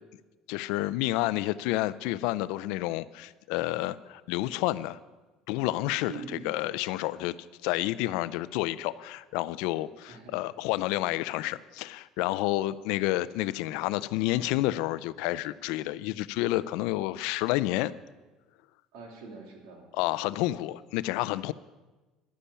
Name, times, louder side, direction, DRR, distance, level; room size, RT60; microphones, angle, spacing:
voice 1, 0.5-5.0 5.5-6.1 6.4-7.3 7.6-17.9 19.9-21.5, left 17 dB, 80° left, 16 dB, 0.5 m, -29 dB
voice 2, 6.1-6.6 10.1-10.5 18.9-19.9, right 4 dB, 75° right, 2 dB, 3.0 m, -44 dB
11.5 x 10.0 x 6.9 m, 1.2 s
cardioid pair, 145°, 0 cm